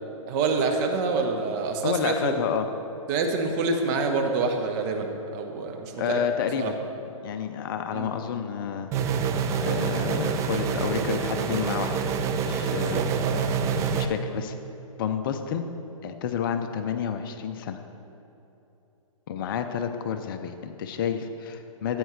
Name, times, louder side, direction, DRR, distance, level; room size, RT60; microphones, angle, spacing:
voice 1, 0.3-2.3 3.1-6.2 6.6-6.7 7.9-8.1 12.6-13.5, right 4 dB, 35° right, 4 dB, 1.1 m, -27 dB
voice 2, 1.8-2.7 6.0-6.8 7.2-8.9 9.6-11.9 12.4-13.0 13.9-14.6 15.0-15.6 16.0-17.8 19.3-22.0, left 8 dB, 40° left, 7 dB, 0.6 m, -29 dB
sound 1, 8.9-14.1, right 6 dB, 15° right, 0.4 m, -26 dB
13.5 x 8.9 x 3.3 m, 3.0 s
figure-of-eight pair, 125°, 18 cm